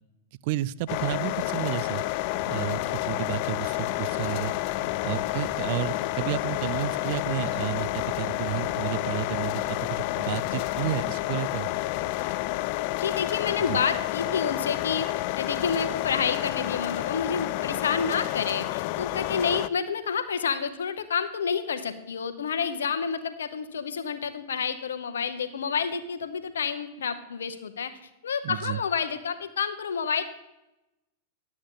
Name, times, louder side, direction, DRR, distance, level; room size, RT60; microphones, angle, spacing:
voice 1, 0.4-2.0 2.5-4.5 5.0-11.7 13.7-13.8 28.4-28.8, right 15 dB, 55° right, 20 dB, 0.3 m, -32 dB
sound 1, 0.9-19.7, left 18 dB, 55° left, 0.3 m, -30 dB
Bass guitar, 2.3-12.2, equal, 85° right, 2.4 m, -49 dB
voice 2, 13.0-15.1 15.4-27.9 28.2-30.2, left 6 dB, 85° left, 10 dB, 0.8 m, -29 dB
11.5 x 8.4 x 3.8 m, 0.94 s
hypercardioid pair, 115°, 0 cm